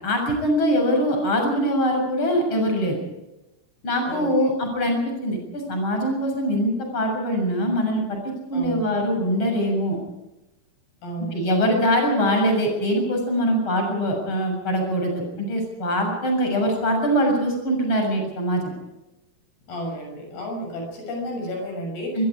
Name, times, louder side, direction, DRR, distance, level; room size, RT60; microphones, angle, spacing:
voice 1, 0.0-3.0 3.8-8.2 8.5-10.0 11.3-18.6 22.1-22.2, equal, 30° left, 3 dB, 7.8 m, -23 dB
voice 2, 4.0-4.5 8.5-8.9 11.0-11.6 19.7-22.3, equal, 75° left, 2 dB, 8.3 m, -32 dB
25.0 x 23.0 x 4.9 m, 0.93 s
omnidirectional pair, 4.5 m